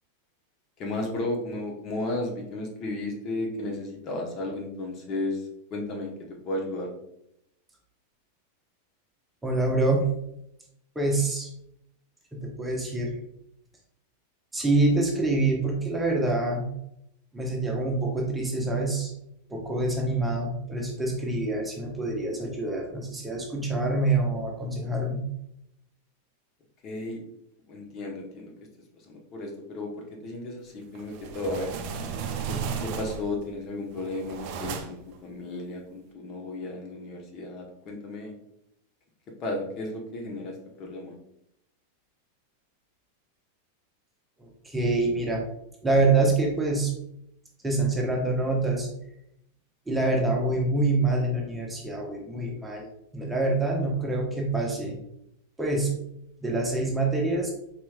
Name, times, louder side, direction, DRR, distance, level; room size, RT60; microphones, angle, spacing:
voice 1, 0.8-6.1 6.4-6.9 26.8-27.2 27.7-28.5 29.1-29.9 30.2-31.7 32.8-38.3 39.4-41.1, left 2 dB, 35° left, 0 dB, 1.0 m, -34 dB
voice 2, 9.4-10.1 10.9-11.5 12.3-13.1 14.5-16.7 17.3-19.1 19.5-25.2 44.4-45.4 45.8-46.9 47.6-48.9 49.9-52.9 53.1-55.0 55.6-56.0 56.4-57.5, right 2 dB, 10° right, -1 dB, 0.9 m, -26 dB
sound 1, 30.9-33.4 33.9-35.1, right 6 dB, 45° right, 0.4 m, -34 dB
4.4 x 4.2 x 2.3 m, 0.77 s
figure-of-eight pair, 90°, 0 cm